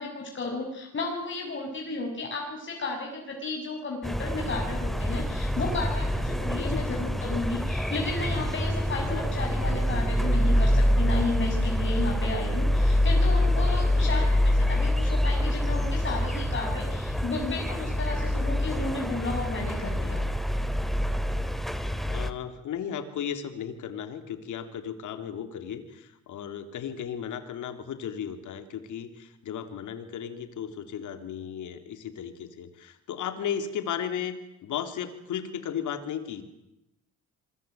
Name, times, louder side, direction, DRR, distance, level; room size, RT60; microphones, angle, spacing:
voice 1, 0.0-20.2, left 3 dB, 40° left, 0 dB, 6.7 m, -33 dB
sound 1, 4.0-22.3, left 1 dB, ahead, 2.6 m, -26 dB
voice 2, 22.1-34.3 34.6-36.4, left 8 dB, 80° left, 9 dB, 3.3 m, -35 dB
27.5 x 23.0 x 9.3 m, 0.86 s
cardioid pair, 90°, 30 cm